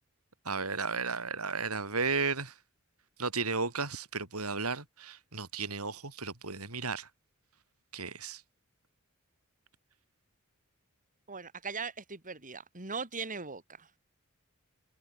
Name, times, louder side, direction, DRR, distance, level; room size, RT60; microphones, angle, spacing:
voice 1, 0.4-2.5 3.2-7.1 7.9-8.4, right 4 dB, 85° right, 6.8 m, -34 dB
voice 2, 11.3-13.9, right 4 dB, 40° right, 4.8 m, -39 dB
head